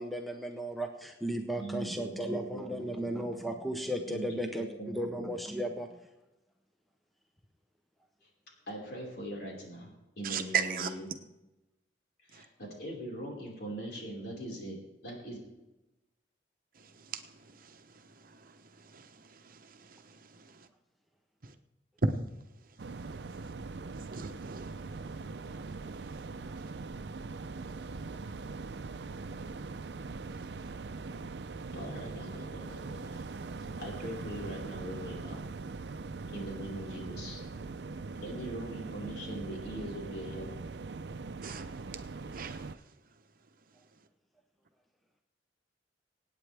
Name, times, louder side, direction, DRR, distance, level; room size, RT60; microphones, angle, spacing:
voice 1, 0.0-6.0 26.4-26.5, right 1 dB, ahead, 0.8 m, -35 dB
voice 2, 1.5-3.4 4.1-5.3 8.2-8.3 8.7-11.1 12.3-14.8 15.0-15.4 31.7-33.3 33.8-35.4 36.3-37.4 38.2-40.5, right 1 dB, 60° left, 4.9 m, -41 dB
voice 3, 10.2-10.9 18.9-19.1 19.5-19.6 19.9-20.0 22.0-22.3 24.1-24.7 41.4-41.7 42.3-42.7, right 4 dB, 50° right, 0.9 m, -33 dB
sound 1, 22.8-42.8, right 3 dB, 70° right, 0.5 m, -41 dB
25.5 x 9.0 x 3.4 m
head